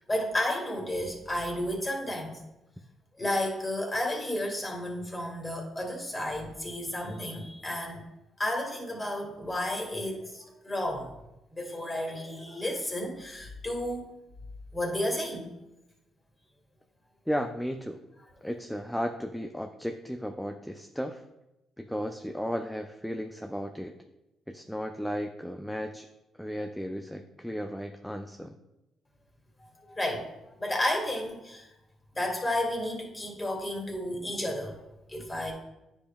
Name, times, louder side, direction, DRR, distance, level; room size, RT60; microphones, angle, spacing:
voice 1, 0.1-2.4 3.2-8.0 8.4-11.1 11.5-14.1 14.7-15.5 29.6-30.3 30.6-31.7 32.1-34.8 35.1-35.5, left 1 dB, 20° left, 1 dB, 1.8 m, -32 dB
voice 2, 17.3-18.0 18.4-21.2 21.8-23.9 24.5-26.1 26.4-28.5, equal, ahead, 5 dB, 0.4 m, -34 dB
9.7 x 5.2 x 2.3 m, 0.94 s
cardioid pair, 90°, 0 cm